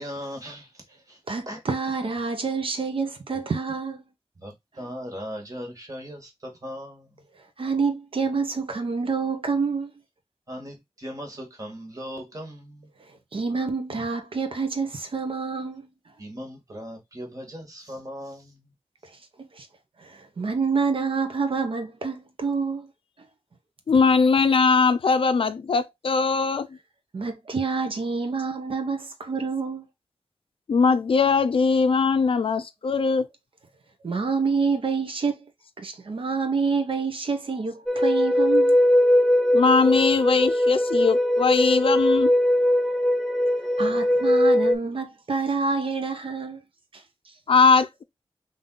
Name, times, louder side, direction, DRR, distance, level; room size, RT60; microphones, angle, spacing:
voice 1, 0.0-1.2 1.5-1.6 4.4-7.2 10.5-12.9 16.2-18.7, equal, 35° right, 1.7 m, -38 dB
voice 2, 1.3-4.0 7.6-9.9 13.1-15.9 19.0-19.7 20.0-22.9 27.1-29.9 34.0-35.5 35.8-38.8 43.4-46.6 46.9-47.3, right 4 dB, 60° right, 0.7 m, -28 dB
voice 3, 23.9-26.7 30.7-33.3 39.5-42.3 47.5-48.0, left 4 dB, 60° left, 0.4 m, -20 dB
sound 1, 37.9-44.7, left 1 dB, ahead, 0.6 m, -20 dB
3.7 x 2.7 x 3.7 m
wide cardioid pair, 120°, 10 cm